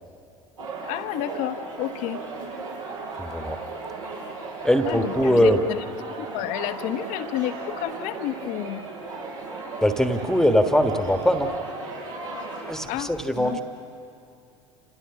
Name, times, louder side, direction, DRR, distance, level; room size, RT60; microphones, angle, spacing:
sound 1, 0.6-12.7, right 3 dB, 75° right, 6.4 m, -36 dB
voice 1, 0.9-2.2 4.9-5.8 6.3-8.8 12.9-13.1 13.4-13.6, left 12 dB, 55° left, 9 dB, 1.3 m, -30 dB
voice 2, 3.2-3.6 4.6-5.6 9.8-11.5 12.6-13.6, equal, 5° left, 6 dB, 1.6 m, -21 dB
29.0 x 26.5 x 6.2 m, 2.6 s
figure-of-eight pair, 65°, 16 cm